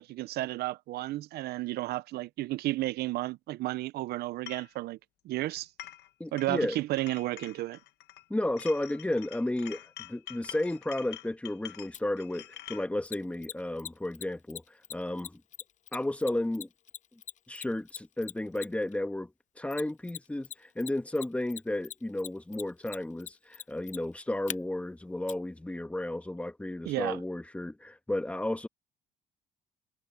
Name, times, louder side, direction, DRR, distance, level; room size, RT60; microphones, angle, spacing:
voice 1, 0.0-5.0 5.2-5.7 6.3-7.8 26.9-27.2, right 17 dB, 70° right, 0.5 m, -32 dB
sound 1, 4.5-4.7 5.6-6.1 6.4-8.2 8.6-12.9, left 14 dB, 75° left, 1.4 m, -46 dB
voice 2, 6.2-6.8 8.3-15.4 15.9-16.7 17.5-28.7, left 1 dB, 10° left, 1.5 m, -33 dB
Mechanisms, 11.9-12.0 13.1-18.9 19.7-20.5 20.8-24.6 25.3-25.4, left 10 dB, 45° left, 0.6 m, -41 dB
cardioid pair, 110°, 17 cm